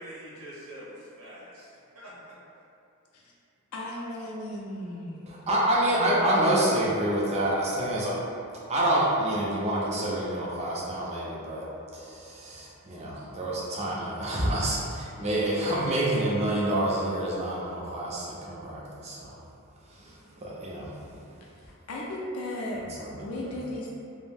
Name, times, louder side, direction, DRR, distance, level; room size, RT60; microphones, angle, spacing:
voice 1, 0.0-2.4, equal, 80° right, -7 dB, 0.8 m, -45 dB
voice 2, 3.7-5.2 6.0-6.6 21.6-22.9 23.2-24.0, left 1 dB, 80° left, -3 dB, 0.4 m, -36 dB
voice 3, 5.3-8.2 8.7-11.6 11.9-19.3 19.9-21.3 23.0-23.5, right 1 dB, 30° right, -5 dB, 0.5 m, -28 dB
2.5 x 2.0 x 3.3 m, 2.6 s
head